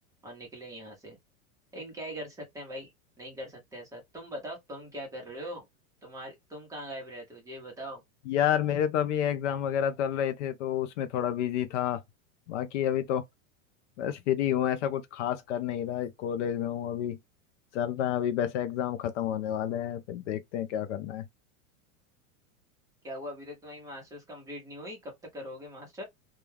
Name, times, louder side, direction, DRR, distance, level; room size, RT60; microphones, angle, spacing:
voice 1, 0.2-1.2 1.7-2.9 3.2-5.7 6.0-8.0 23.0-26.0, equal, 10° right, 0.7 m, -41 dB
voice 2, 8.3-12.0 12.5-13.2 14.0-17.2 17.7-21.2, left 10 dB, 60° left, 0.5 m, -29 dB
2.3 x 2.2 x 3.2 m
supercardioid pair, 145°, 42 cm